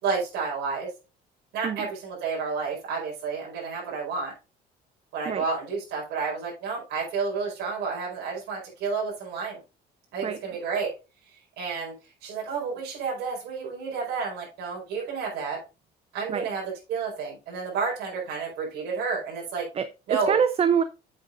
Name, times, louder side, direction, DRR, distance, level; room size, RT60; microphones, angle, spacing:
voice 1, 0.0-0.9 1.5-4.3 5.1-9.6 10.1-10.9 11.3-11.9 12.2-15.6 16.1-19.7 20.1-20.4, right 5 dB, 75° right, -4 dB, 4.6 m, -30 dB
voice 2, 19.7-20.8, right 7 dB, 35° right, 12 dB, 0.6 m, -25 dB
8.5 x 7.7 x 2.5 m, 0.30 s
cardioid pair, 110°, 17 cm